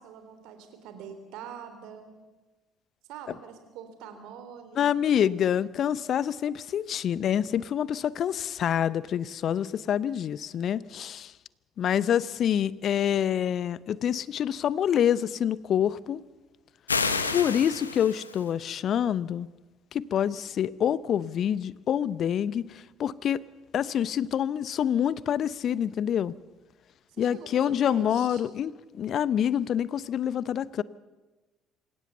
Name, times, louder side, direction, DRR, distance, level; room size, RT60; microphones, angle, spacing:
voice 1, 0.0-2.0 3.1-4.9 27.2-28.5, right 7 dB, 65° right, 7 dB, 3.3 m, -44 dB
voice 2, 4.8-11.3 11.8-16.2 17.3-19.5 19.9-23.4 23.7-26.3 27.2-30.8, left 9 dB, 50° left, 20 dB, 0.7 m, -27 dB
sound 1, 16.9-18.5, left 4 dB, 85° left, 1.0 m, -29 dB
26.5 x 16.5 x 7.0 m, 1.2 s
figure-of-eight pair, 50°, 0 cm